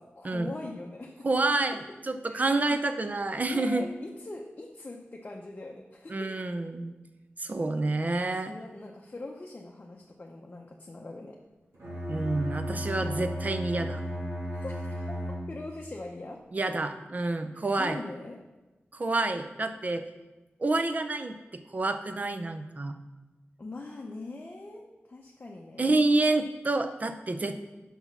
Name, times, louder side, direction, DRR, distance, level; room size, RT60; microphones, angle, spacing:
voice 1, 0.0-1.3 2.3-2.8 3.5-6.3 8.2-11.4 13.0-13.4 14.5-16.4 17.8-18.4 23.6-26.1, left 2 dB, 35° left, 0 dB, 0.7 m, -42 dB
voice 2, 1.2-3.8 6.1-6.9 7.4-8.5 12.1-14.0 16.5-18.0 18.9-20.0 20.6-21.4 21.7-23.0 25.8-27.6, right 2 dB, 40° right, 9 dB, 0.5 m, -28 dB
Bowed string instrument, 11.7-15.8, equal, 90° right, 2.3 m, -35 dB
6.1 x 5.5 x 5.9 m, 1.1 s
wide cardioid pair, 110°, 4 cm